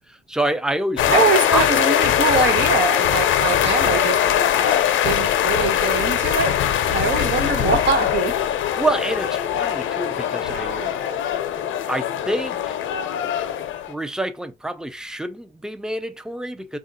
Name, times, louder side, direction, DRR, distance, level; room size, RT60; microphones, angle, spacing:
voice 1, 0.1-1.2 1.5-1.7 3.8-4.1 8.8-11.0 11.9-12.8 13.9-16.8, right 1 dB, 5° right, 0.6 m, -27 dB
sound 1, 1.0-13.9, left 10 dB, 80° left, 0.6 m, -21 dB
voice 2, 1.1-4.2 5.0-6.5 6.9-8.3, right 5 dB, 60° right, 1.4 m, -23 dB
3.7 x 2.4 x 4.1 m
cardioid pair, 90°, 20 cm